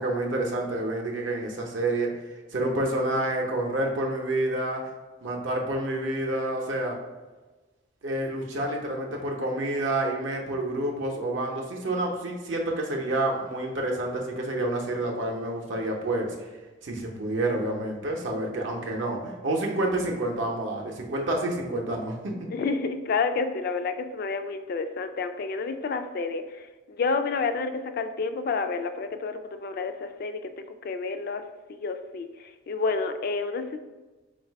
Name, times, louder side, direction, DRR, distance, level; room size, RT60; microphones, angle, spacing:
voice 1, 0.0-2.1 2.5-4.8 5.2-7.0 8.0-16.5 16.8-22.3, right 1 dB, 70° right, 0 dB, 0.6 m, -28 dB
voice 2, 22.5-30.5 30.8-31.4 31.7-33.8, left 4 dB, 50° left, 8 dB, 0.3 m, -29 dB
3.9 x 2.3 x 4.5 m, 1.2 s
head